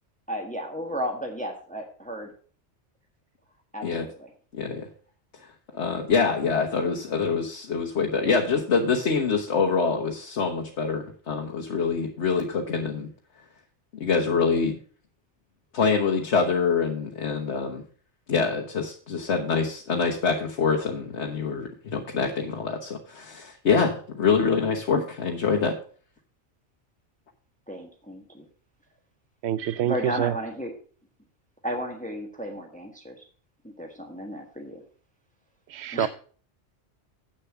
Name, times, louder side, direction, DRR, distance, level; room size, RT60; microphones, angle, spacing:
voice 1, 0.3-2.3 3.7-4.3 27.7-28.5 29.8-30.7 31.6-33.2 33.6-34.8 35.9-36.1, equal, 5° left, 1.3 m, -33 dB
voice 2, 4.5-4.9 5.7-13.1 14.0-14.7 15.7-17.8 18.3-25.7, left 5 dB, 75° left, 1.4 m, -25 dB
voice 3, 29.4-30.3 35.7-36.1, right 10 dB, 70° right, 0.8 m, -26 dB
8.3 x 6.7 x 5.8 m
omnidirectional pair, 1.2 m